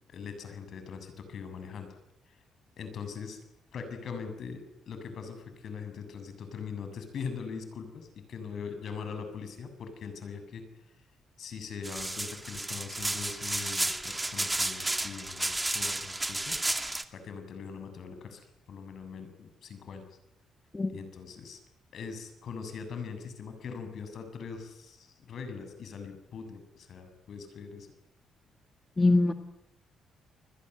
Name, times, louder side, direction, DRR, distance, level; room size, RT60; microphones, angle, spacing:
voice 1, 0.1-1.9 2.3-2.4 2.8-3.4 3.7-10.6 11.4-16.6 16.8-20.2 20.9-21.6 21.9-27.9, left 6 dB, 60° left, 8 dB, 7.2 m, -41 dB
sound 1, 11.8-17.0, right 2 dB, 10° right, 2.3 m, -32 dB
voice 2, 29.0-29.3, left 2 dB, 20° left, 7 dB, 2.1 m, -23 dB
29.5 x 22.0 x 8.1 m, 0.82 s
cardioid pair, 90°, 0 cm